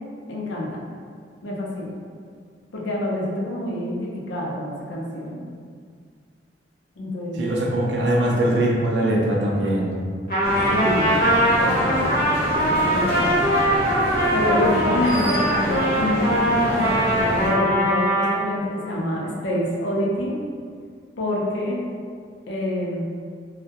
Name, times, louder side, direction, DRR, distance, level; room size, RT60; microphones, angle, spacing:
voice 1, 0.3-0.8 1.4-1.9 2.7-5.5 7.0-7.5 10.7-11.2 11.6-12.2 12.9-13.4 14.3-20.4 21.2-21.8 22.5-23.0, left 1 dB, 80° left, -3 dB, 0.5 m, -26 dB
voice 2, 7.4-10.0, right 1 dB, 70° right, -2 dB, 0.4 m, -21 dB
Trumpet, 10.3-18.4, equal, 50° left, 0.8 m, -21 dB
sound 1, 10.4-17.5, equal, 35° right, 0.7 m, -28 dB
2.2 x 2.0 x 2.7 m, 2.1 s
head